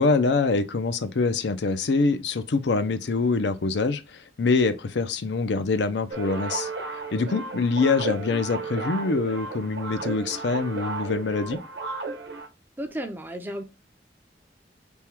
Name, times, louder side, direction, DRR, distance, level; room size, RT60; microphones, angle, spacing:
voice 1, 0.0-6.7 7.1-11.6, left 4 dB, 80° left, 0.5 m, -24 dB
sound 1, 6.1-12.5, right 4 dB, 80° right, 0.9 m, -34 dB
voice 2, 12.8-13.6, right 1 dB, 10° right, 0.5 m, -33 dB
3.5 x 2.2 x 4.4 m
head